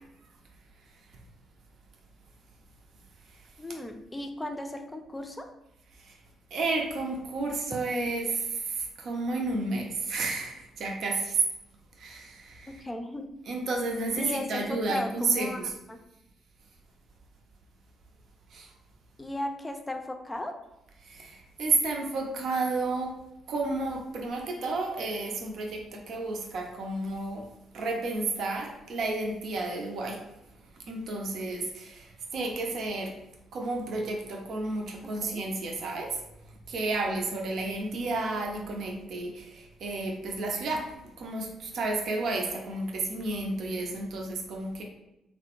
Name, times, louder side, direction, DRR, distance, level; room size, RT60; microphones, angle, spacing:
voice 1, 3.6-5.5 12.8-13.3 14.2-16.0 19.2-20.5 35.2-35.4, left 1 dB, 20° left, 5 dB, 0.5 m, -36 dB
voice 2, 6.5-11.4 12.0-12.7 13.5-15.7 18.5-18.7 21.0-23.1 23.5-27.4 27.7-30.2 30.9-33.1 33.5-36.1 36.7-40.8 41.2-44.8, right 3 dB, 60° right, 1 dB, 0.6 m, -31 dB
3.3 x 2.1 x 2.9 m, 0.89 s
hypercardioid pair, 45°, 0 cm